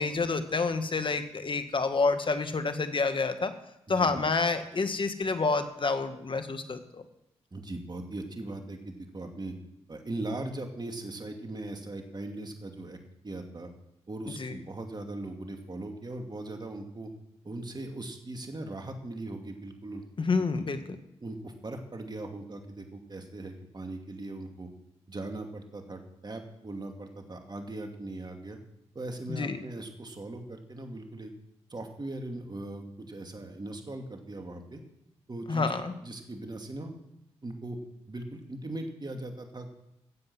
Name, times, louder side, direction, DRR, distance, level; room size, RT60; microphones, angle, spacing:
voice 1, 0.0-3.5 3.9-7.0 14.4-14.6 20.2-20.8 29.3-29.6 35.5-35.9, left 4 dB, 45° left, 9 dB, 1.6 m, -28 dB
voice 2, 3.9-4.2 7.5-9.6 9.9-13.0 13.2-13.7 14.1-17.1 17.4-20.6 21.2-24.7 25.1-28.6 28.9-31.3 31.7-34.8 35.3-35.7 36.0-36.9 37.4-37.8 38.1-39.7, right 2 dB, 40° right, 4 dB, 2.6 m, -39 dB
16.5 x 7.8 x 6.2 m, 0.82 s
supercardioid pair, 45°, 11 cm